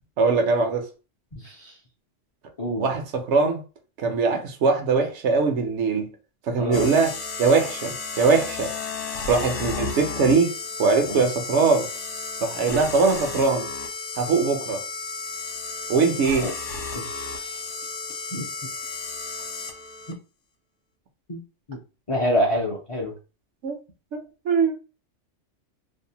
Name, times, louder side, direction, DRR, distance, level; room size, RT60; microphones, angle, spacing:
voice 1, 0.2-0.9 2.8-3.6 4.0-6.1 6.5-8.7 9.3-10.5 10.8-11.9 12.4-13.7 14.2-14.8 15.9-16.5 23.6-23.8 24.1-24.7, right 4 dB, 75° right, 0.9 m, -21 dB
voice 2, 1.3-1.8 2.6-2.9 6.6-6.9 11.0-11.3 12.7-12.8 16.3-16.5 16.9-17.7 18.3-18.7 21.3-21.4 21.7-21.8 22.1-23.1, equal, 45° left, 0.4 m, -28 dB
sound 1, 6.7-20.1, left 4 dB, 75° left, 0.9 m, -33 dB
2.6 x 2.1 x 2.7 m
omnidirectional pair, 1.3 m